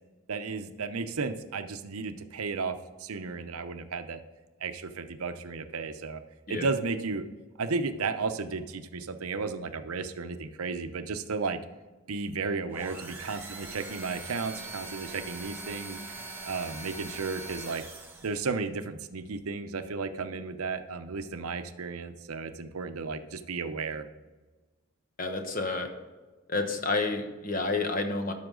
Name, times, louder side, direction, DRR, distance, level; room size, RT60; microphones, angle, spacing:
voice 1, 0.3-4.2 4.6-6.2 6.5-7.2 7.6-11.6 12.1-17.8 18.2-24.0, right 4 dB, 90° right, 9 dB, 0.7 m, -34 dB
sound 1, 12.7-18.5, right 3 dB, 10° right, 1.1 m, -42 dB
voice 2, 25.2-25.9 26.5-28.3, left 3 dB, 40° left, 5 dB, 1.0 m, -30 dB
12.5 x 5.8 x 3.8 m, 1.3 s
head